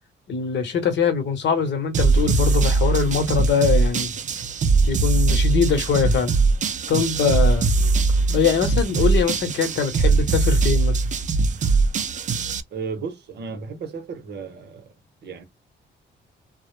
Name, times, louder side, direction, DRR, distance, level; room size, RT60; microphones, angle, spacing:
voice 1, 0.3-4.1 4.8-6.3 6.9-7.7 8.3-11.0, left 6 dB, 65° left, 0.9 m, -22 dB
sound 1, 1.9-12.6, right 3 dB, 40° right, 0.4 m, -21 dB
voice 2, 12.7-14.9 15.2-15.4, right 5 dB, 60° right, 0.8 m, -34 dB
2.1 x 2.0 x 3.0 m
cardioid pair, 90°, 20 cm